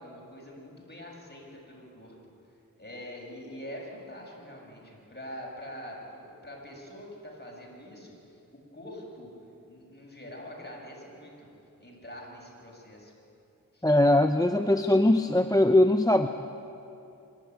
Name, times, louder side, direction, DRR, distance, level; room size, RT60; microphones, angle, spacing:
voice 1, 0.0-2.2 2.8-8.4 8.7-9.3 9.7-11.5 11.8-13.1 13.7-13.9, equal, 30° left, -2 dB, 6.7 m, -44 dB
voice 2, 13.8-16.3, left 1 dB, 10° left, 8 dB, 0.7 m, -21 dB
26.0 x 12.0 x 9.2 m, 2.7 s
cardioid pair, 45°, 34 cm